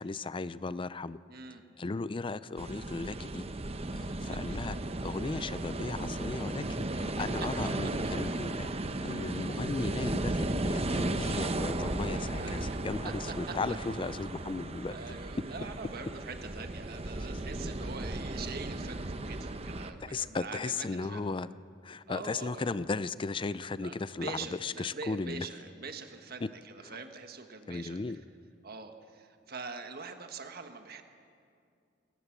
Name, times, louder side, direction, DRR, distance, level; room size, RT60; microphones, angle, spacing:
voice 1, 0.0-1.2 1.8-3.4 3.9-4.8 5.0-8.7 9.0-15.0 20.0-21.5 21.8-25.5 26.4-26.5 26.8-27.0 27.7-28.2, left 3 dB, 25° left, 16 dB, 0.4 m, -36 dB
voice 2, 1.3-1.6 4.2-4.6 7.2-7.5 7.8-7.9 12.4-12.8 13.0-13.1 13.5-13.6 14.9-21.3 22.1-22.7 23.8-28.0 28.6-31.0, right 4 dB, 55° right, 6 dB, 1.4 m, -44 dB
sound 1, 2.6-19.9, right 2 dB, 35° right, 0.9 m, -35 dB
22.0 x 19.0 x 7.3 m, 2.4 s
head